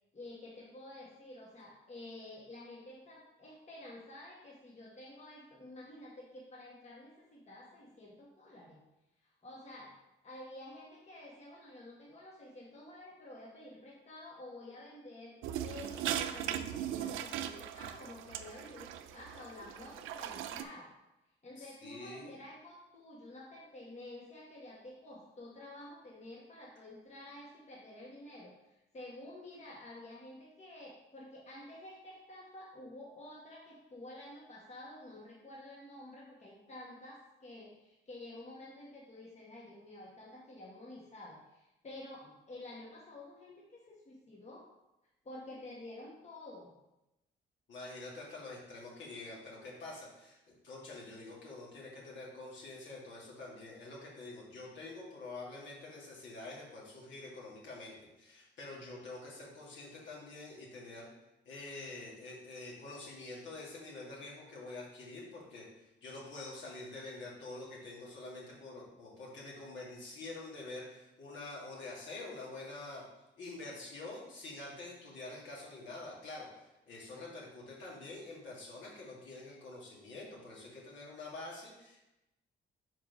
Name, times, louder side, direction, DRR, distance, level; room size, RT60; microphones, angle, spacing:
voice 1, 0.1-8.8 9.4-10.0 10.2-20.9 21.4-44.7 45.2-46.7, left 1 dB, 35° left, -4 dB, 1.5 m, -50 dB
sound 1, 15.4-20.6, right 11 dB, 90° right, 0.4 m, -39 dB
voice 2, 21.6-22.3 47.7-61.1 61.4-65.7 66.0-73.0 73.4-76.5 76.9-82.0, left 2 dB, 70° left, -5 dB, 2.4 m, -47 dB
4.7 x 4.5 x 5.3 m, 0.94 s
cardioid pair, 90°, 20 cm